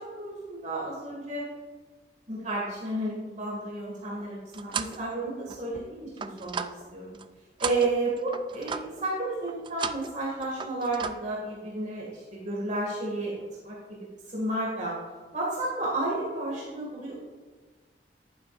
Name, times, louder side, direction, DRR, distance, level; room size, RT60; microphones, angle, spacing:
voice 1, 0.0-1.5 2.3-6.6 6.9-7.2 7.6-13.3 13.6-14.0 14.3-14.9 15.3-17.2, right 2 dB, 45° right, -5 dB, 2.1 m, -32 dB
sound 1, 4.0-5.0 5.5-7.3 7.6-9.1 9.5-10.2 10.4-11.2, right 6 dB, 30° right, 0.3 m, -36 dB
11.0 x 9.4 x 2.5 m, 1.4 s
head